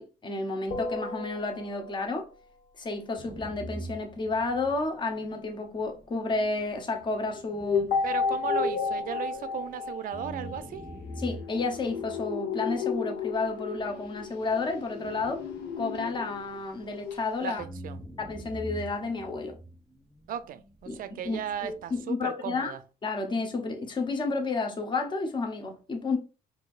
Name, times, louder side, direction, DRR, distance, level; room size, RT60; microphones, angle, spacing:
voice 1, 0.0-2.3 2.8-7.9 11.2-15.4 15.8-17.6 18.2-19.6 20.9-22.7 23.0-26.2, left 3 dB, 25° left, 0.8 m, -31 dB
sound 1, 0.7-2.2 7.9-11.3, left 4 dB, 50° left, 1.6 m, -32 dB
sound 2, 3.2-9.7 10.1-17.2 17.6-22.0, equal, ahead, 0.3 m, -46 dB
sound 3, 7.4-16.6 16.9-17.2 17.5-17.6, left 6 dB, 85° left, 0.8 m, -35 dB
voice 2, 8.0-10.8 17.4-18.0 20.3-22.8, right 10 dB, 55° right, 0.5 m, -36 dB
4.4 x 2.6 x 2.4 m
cardioid pair, 110°, 17 cm